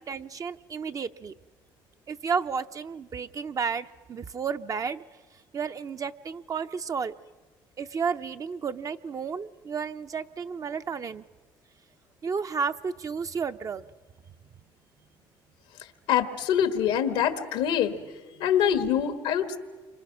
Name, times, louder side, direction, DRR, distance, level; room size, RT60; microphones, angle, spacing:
voice 1, 0.0-1.3 2.1-5.0 5.5-7.1 7.8-11.2 12.2-13.8, right 6 dB, 40° right, 9 dB, 0.7 m, -32 dB
voice 2, 16.1-17.9 18.4-19.6, left 9 dB, 90° left, 9 dB, 1.6 m, -24 dB
29.0 x 25.5 x 6.1 m, 1.4 s
supercardioid pair, 90°, 9 cm